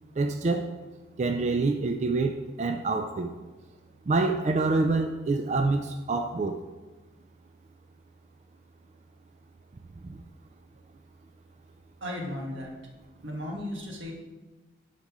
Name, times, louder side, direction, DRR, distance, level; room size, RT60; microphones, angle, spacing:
voice 1, 0.2-0.7 1.2-3.3 4.1-6.6 10.0-10.1, right 3 dB, 35° right, 6 dB, 0.3 m, -26 dB
voice 2, 12.0-12.7 13.2-14.1, left 1 dB, 85° right, 0 dB, 1.6 m, -35 dB
10.5 x 4.1 x 4.8 m, 1.2 s
head